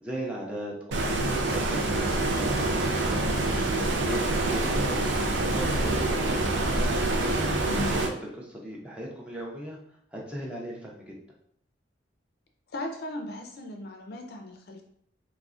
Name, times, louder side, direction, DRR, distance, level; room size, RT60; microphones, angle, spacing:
voice 1, 0.0-1.9 2.5-3.0 3.4-5.3 5.5-6.4 7.2-9.8 10.1-11.2, right 1 dB, 5° right, -4 dB, 0.4 m, -38 dB
Stream, 0.9-8.1, right 2 dB, 75° right, 0.4 m, -26 dB
voice 2, 3.0-3.4 7.7-7.9 12.7-14.8, left 1 dB, 55° left, 3 dB, 0.4 m, -37 dB
3.5 x 2.0 x 2.4 m, 0.67 s
head